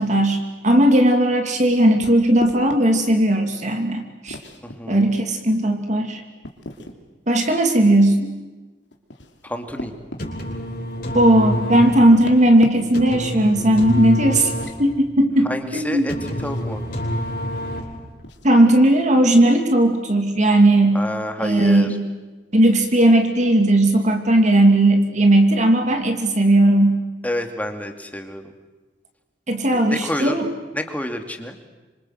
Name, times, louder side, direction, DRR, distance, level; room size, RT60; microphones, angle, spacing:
voice 1, 0.0-4.4 4.9-6.2 7.3-8.3 11.1-14.5 14.8-16.1 18.4-21.0 21.4-22.0 22.5-27.0 29.5-30.4, right 1 dB, 40° right, 4 dB, 2.6 m, -17 dB
sound 1, 2.0-2.8 4.3-4.8 6.4-7.0 8.9-10.3 12.0-13.1 14.4-14.8 16.4-16.7 18.2-18.5, left 1 dB, 75° left, 3.1 m, -36 dB
voice 2, 4.6-5.1 9.4-9.9 15.4-16.8 20.9-22.0 27.2-28.5 29.7-30.4 30.7-31.6, left 1 dB, 10° left, 5 dB, 2.6 m, -29 dB
sound 2, 10.0-18.2, equal, 50° left, 5.7 m, -27 dB
26.5 x 26.0 x 7.9 m, 1.2 s
head